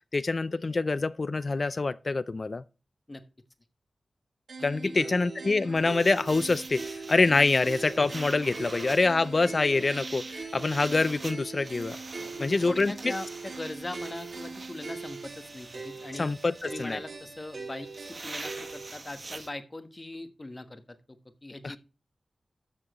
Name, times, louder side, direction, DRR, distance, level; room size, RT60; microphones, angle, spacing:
voice 1, 0.1-2.6 4.6-12.0 12.4-13.1 16.2-17.0 21.6-21.8, left 3 dB, 40° left, 0.5 m, -26 dB
sound 1, 4.5-18.9, right 4 dB, 80° right, 3.7 m, -41 dB
voice 2, 4.6-5.1 12.2-16.3 16.6-21.8, left 2 dB, 25° left, 1.2 m, -40 dB
sound 2, 5.8-19.5, right 3 dB, 40° right, 1.0 m, -44 dB
13.0 x 7.3 x 3.0 m
wide cardioid pair, 125°, 0 cm